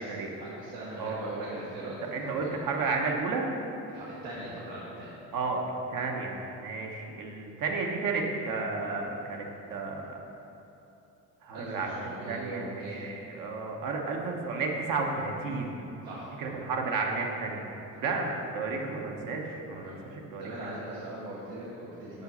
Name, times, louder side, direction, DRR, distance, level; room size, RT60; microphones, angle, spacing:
voice 1, 0.0-2.6 3.9-5.1 11.5-13.2 16.0-16.3 17.9-18.0 19.8-20.1 20.4-22.2, right 1 dB, 85° right, -7 dB, 1.3 m, -40 dB
voice 2, 1.0-1.4 2.1-3.4 5.3-5.6 5.9-10.2 11.4-15.8 16.4-17.7 17.9-20.5, right 4 dB, 65° right, 1 dB, 1.0 m, -32 dB
5.5 x 4.8 x 5.3 m, 2.8 s
cardioid pair, 100°, 36 cm